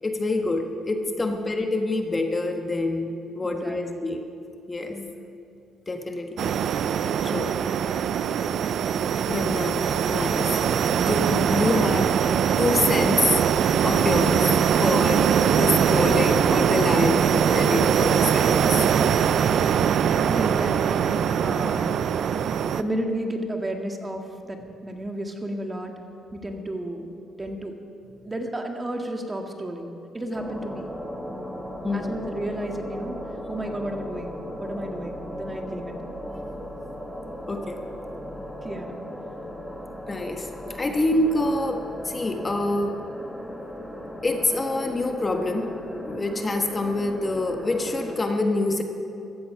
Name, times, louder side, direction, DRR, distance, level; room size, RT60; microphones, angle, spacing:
voice 1, 0.0-3.1 3.3-4.2 4.7-5.0 5.9-6.5 7.2-7.5 9.2-9.8 10.1-10.5 10.9-12.1 12.6-13.4 13.8-18.6 31.8-32.1 37.5-37.7 40.1-40.5 40.8-42.9 44.2-45.7 46.1-48.8, left 2 dB, 25° left, 4 dB, 1.4 m, -26 dB
voice 2, 3.4-4.1 4.9-5.2 20.3-22.0 22.7-25.9 26.3-27.1 27.4-27.7 28.2-30.9 31.9-33.2 33.5-34.3 34.6-35.9 38.6-39.0 40.9-41.0, right 1 dB, 20° right, 3 dB, 1.8 m, -32 dB
sound 1, 6.4-22.8, right 8 dB, 65° right, 0.5 m, -22 dB
sound 2, 30.3-48.2, equal, ahead, 2.1 m, -37 dB
15.5 x 13.5 x 5.8 m, 2.7 s
cardioid pair, 90°, 0 cm